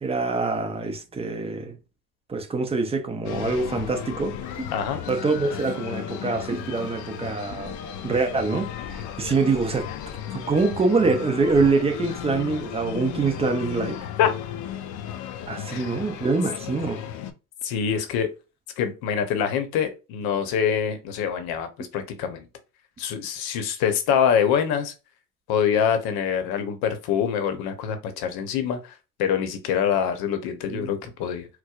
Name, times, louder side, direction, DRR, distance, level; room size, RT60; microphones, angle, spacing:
voice 1, 0.0-1.8 2.3-4.7 5.1-7.7 8.0-9.9 10.3-14.0 15.5-17.1 30.7-30.9, right 4 dB, 15° right, 0.5 m, -25 dB
sound 1, 3.2-17.3, left 9 dB, 45° left, 0.5 m, -35 dB
voice 2, 17.6-18.3 18.8-22.4 23.0-24.9 25.5-31.5, left 8 dB, 60° left, 0.8 m, -25 dB
4.4 x 2.1 x 2.3 m
supercardioid pair, 115°, 41 cm